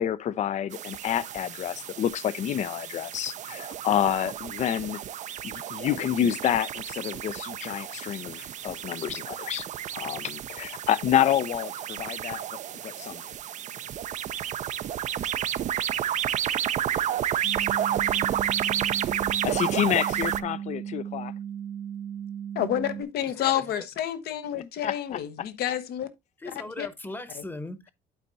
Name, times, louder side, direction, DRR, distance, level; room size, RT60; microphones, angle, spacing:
voice 1, 0.0-5.0 5.4-9.6 9.9-13.2 19.4-21.3 24.8-25.2, left 10 dB, 45° left, 0.5 m, -28 dB
sound 1, 0.7-20.4, right 10 dB, 45° right, 0.5 m, -31 dB
sound 2, 17.4-23.0, right 9 dB, 70° right, 1.4 m, -36 dB
voice 2, 22.5-26.1 26.8-26.9 27.3-27.4, left 11 dB, 70° left, 1.0 m, -29 dB
voice 3, 26.4-27.9, left 2 dB, 10° left, 1.0 m, -39 dB
11.5 x 4.4 x 2.6 m
cardioid pair, 110°, 17 cm